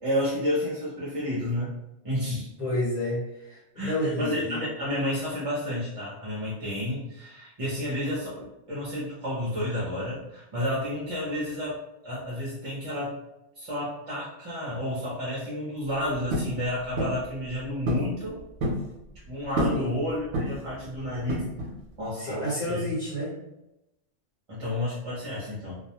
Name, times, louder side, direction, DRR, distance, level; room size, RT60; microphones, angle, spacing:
voice 1, 0.0-1.7 2.0-2.5 3.8-13.1 13.6-18.4 19.3-21.4 22.0-22.9 24.5-25.8, left 1 dB, 40° right, -7 dB, 0.6 m, -31 dB
voice 2, 2.6-4.6 19.7-20.0 22.2-23.4, left 1 dB, 45° left, -9 dB, 1.0 m, -30 dB
sound 1, 16.3-16.6 17.0-17.2 17.9-18.1 18.4-18.9 19.6-19.9 20.3-20.7 21.3-21.8, equal, 70° right, 0.8 m, -28 dB
2.3 x 2.1 x 2.8 m, 0.93 s
omnidirectional pair, 1.2 m